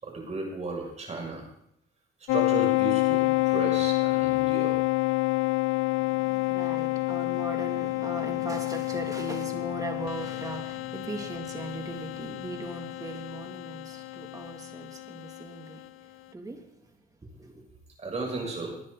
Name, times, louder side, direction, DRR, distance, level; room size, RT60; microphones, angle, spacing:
voice 1, 0.0-1.4 2.3-4.8 18.0-18.8, right 2 dB, 30° right, 1 dB, 6.4 m, -34 dB
sound 1, 2.3-15.4, left 23 dB, 75° left, 0.5 m, -28 dB
voice 2, 5.9-15.8 16.3-16.6 17.3-17.6, right 2 dB, 15° right, 3 dB, 2.7 m, -39 dB
20.5 x 9.8 x 4.0 m, 0.77 s
supercardioid pair, 90°, 21 cm